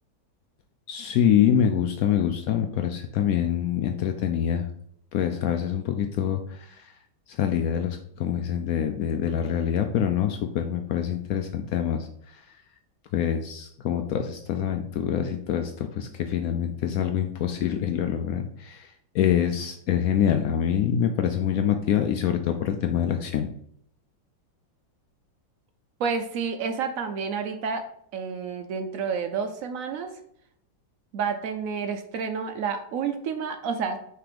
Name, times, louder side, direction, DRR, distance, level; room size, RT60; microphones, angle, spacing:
voice 1, 0.9-4.7 5.1-6.9 7.3-12.1 12.3-12.4 13.1-18.9 19.1-23.5, left 9 dB, 85° left, 6 dB, 0.7 m, -25 dB
voice 2, 26.0-27.8 28.1-30.1 31.1-34.0, right 6 dB, 85° right, 7 dB, 0.7 m, -29 dB
5.9 x 3.4 x 5.0 m, 0.70 s
omnidirectional pair, 2.0 m